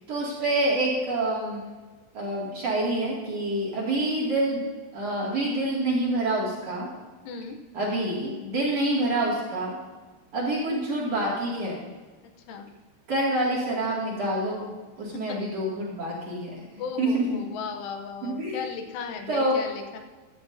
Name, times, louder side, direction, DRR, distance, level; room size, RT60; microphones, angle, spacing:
voice 1, 0.1-1.6 2.1-4.6 4.9-6.9 7.7-9.8 10.3-11.9 13.1-14.7 15.0-17.4 18.2-18.6 19.3-19.6, right 1 dB, 40° right, -6 dB, 2.9 m, -27 dB
voice 2, 7.2-7.6 12.5-12.7 15.1-15.4 16.8-20.0, left 6 dB, 80° left, 5 dB, 3.4 m, -36 dB
15.0 x 13.0 x 2.8 m, 1.3 s
omnidirectional pair, 5.5 m